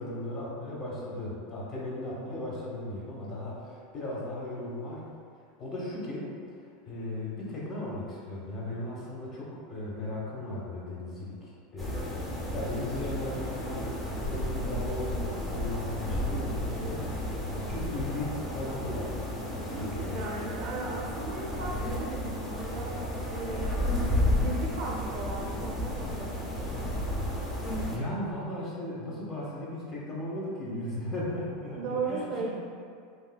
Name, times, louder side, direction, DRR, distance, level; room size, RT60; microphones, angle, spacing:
voice 1, 0.0-5.1 5.6-6.4 6.9-13.9 14.2-20.5 27.9-32.5, left 1 dB, 35° left, -5 dB, 1.0 m, -37 dB
sound 1, 11.8-28.0, left 1 dB, 15° left, 0.7 m, -32 dB
voice 2, 19.7-26.9 31.7-32.5, right 3 dB, 55° right, -1 dB, 0.5 m, -37 dB
3.5 x 2.6 x 2.2 m, 2.2 s
hypercardioid pair, 90°, 0 cm